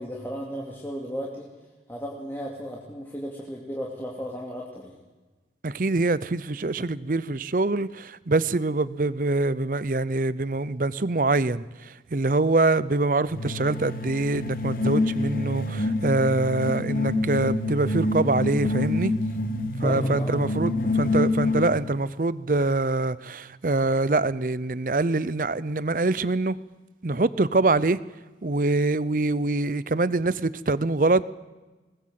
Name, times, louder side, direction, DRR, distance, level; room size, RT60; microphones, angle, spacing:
voice 1, 0.0-1.5 1.9-4.9 19.8-20.5, equal, 10° left, 2.4 m, -35 dB
voice 2, 5.6-19.1 19.8-26.6 27.0-28.0 28.4-31.2, right 2 dB, 50° right, 0.6 m, -24 dB
sound 1, 13.3-21.9, left 2 dB, 50° left, 1.3 m, -27 dB
21.0 x 19.0 x 7.6 m
head